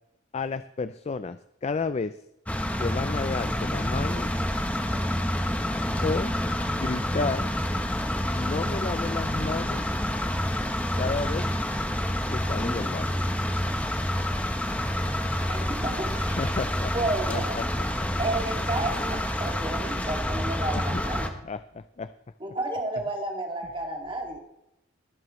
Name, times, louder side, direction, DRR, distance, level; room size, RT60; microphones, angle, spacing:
voice 1, 0.3-2.2 2.8-4.3 6.0-6.4 6.6-7.5 8.4-9.9 11.0-11.5 12.3-13.3 16.4-17.0 17.3-17.7 20.8-21.0 21.4-22.1, left 4 dB, 35° left, 12 dB, 0.3 m, -32 dB
sound 1, 2.5-21.3, left 1 dB, 10° left, 1.0 m, -28 dB
voice 2, 15.5-16.5 16.9-17.6 18.2-21.3 22.4-24.4, right 2 dB, 25° right, 1 dB, 2.2 m, -31 dB
23.0 x 7.8 x 3.1 m, 0.87 s
head